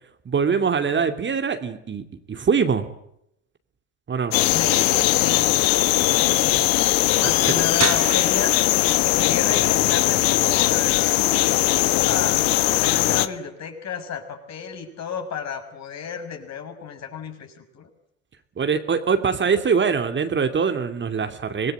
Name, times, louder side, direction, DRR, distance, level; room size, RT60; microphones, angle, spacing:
voice 1, 0.3-2.9 4.1-4.3 7.4-7.5 18.6-21.7, right 6 dB, 30° right, 7 dB, 2.7 m, -23 dB
sound 1, 4.3-13.3, left 17 dB, 60° left, 1.6 m, -20 dB
voice 2, 4.5-5.6 6.1-6.6 7.2-8.5 9.1-12.4 12.8-17.9, left 7 dB, 40° left, 5 dB, 6.5 m, -32 dB
sound 2, 7.8-13.4, right 9 dB, 45° right, 4.2 m, -35 dB
26.5 x 20.5 x 7.9 m, 0.77 s
hypercardioid pair, 75°, 39 cm